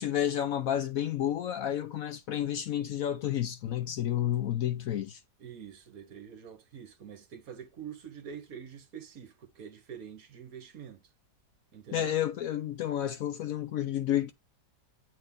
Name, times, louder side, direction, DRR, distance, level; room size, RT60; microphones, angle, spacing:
voice 1, 0.0-5.2 11.9-14.3, left 11 dB, 65° left, 0.9 m, -30 dB
voice 2, 5.4-11.1 11.7-12.2, right 8 dB, 60° right, 1.4 m, -46 dB
8.3 x 3.8 x 3.5 m
omnidirectional pair, 1.8 m